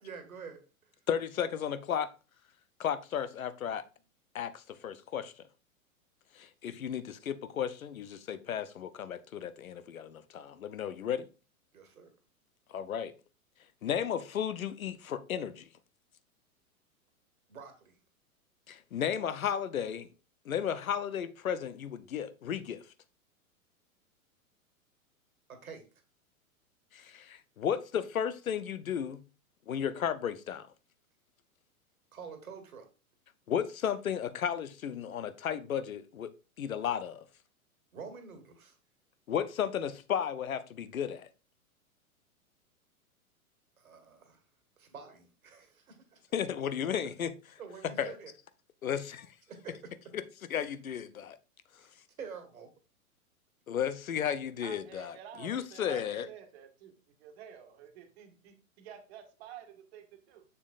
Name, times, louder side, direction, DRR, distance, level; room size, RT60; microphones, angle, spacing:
voice 1, 0.0-0.9 11.7-12.1 17.5-18.0 25.5-25.8 32.1-32.9 37.9-38.8 43.8-44.4 44.8-46.2 47.6-48.3 49.5-49.9 51.8-51.9 52.2-52.7, right 6 dB, 70° right, 1.7 m, -47 dB
voice 2, 1.1-2.1 2.8-3.8 4.3-5.3 6.3-11.3 12.7-13.1 13.8-15.7 18.7-20.1 20.5-22.8 26.9-29.2 29.7-30.7 33.5-37.3 39.3-41.3 46.3-47.3 47.8-48.1 48.8-49.3 50.1-50.2 50.5-51.4 53.7-56.3, left 8 dB, 70° left, 0.7 m, -34 dB
voice 3, 54.6-60.4, right 9 dB, 45° right, 1.6 m, -50 dB
6.9 x 6.8 x 2.4 m
figure-of-eight pair, 105°, 43 cm